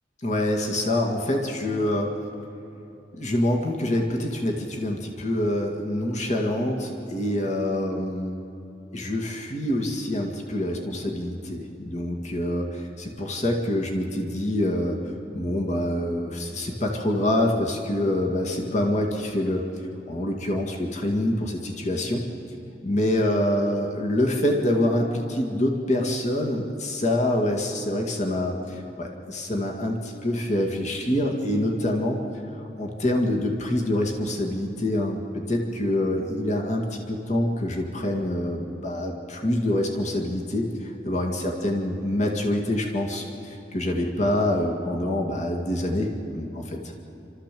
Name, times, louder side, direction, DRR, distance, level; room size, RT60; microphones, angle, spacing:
voice 1, 0.2-2.1 3.1-8.4 8.9-15.0 15.3-19.6 20.1-22.2 22.8-32.2 32.8-46.8, left 1 dB, 45° left, 1 dB, 2.0 m, -26 dB
29.5 x 13.5 x 7.6 m, 2.9 s
head